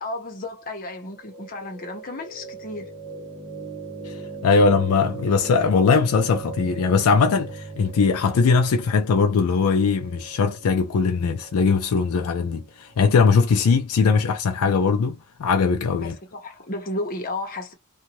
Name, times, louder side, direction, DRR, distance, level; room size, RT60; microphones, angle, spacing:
voice 1, 0.0-2.9 16.0-17.7, left 2 dB, 40° left, 0.9 m, -33 dB
sound 1, 1.1-13.2, right 4 dB, 25° right, 0.8 m, -39 dB
voice 2, 4.0-16.2, left 5 dB, 75° left, 0.4 m, -20 dB
2.6 x 2.3 x 3.0 m
head